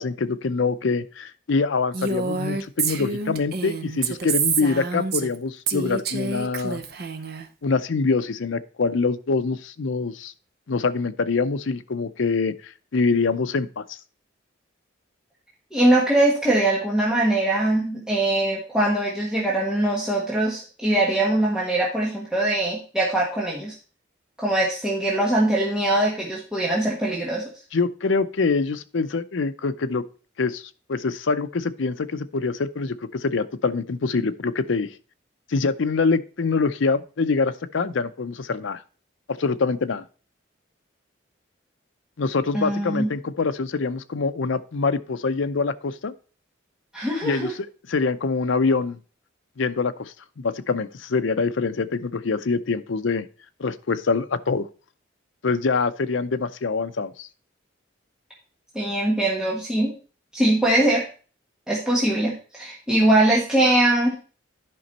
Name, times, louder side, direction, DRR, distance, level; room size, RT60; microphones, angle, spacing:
voice 1, 0.0-6.8 7.6-10.3 10.7-14.0 27.7-30.0 30.4-30.6 30.9-35.0 35.5-38.8 39.3-40.1 42.2-46.1 47.2-49.0 49.6-53.3 53.6-54.7 55.4-57.3, left 4 dB, 70° left, 11 dB, 0.6 m, -25 dB
Female speech woman speaking, 1.9-5.4 5.7-7.4, right 5 dB, 50° right, 0.7 m, -27 dB
voice 2, 15.7-23.7 24.4-27.4 42.5-43.1 46.9-47.5 58.7-59.9 60.3-61.0 61.7-64.2, right 1 dB, 5° right, -5 dB, 1.4 m, -22 dB
11.0 x 5.2 x 4.1 m, 0.37 s
head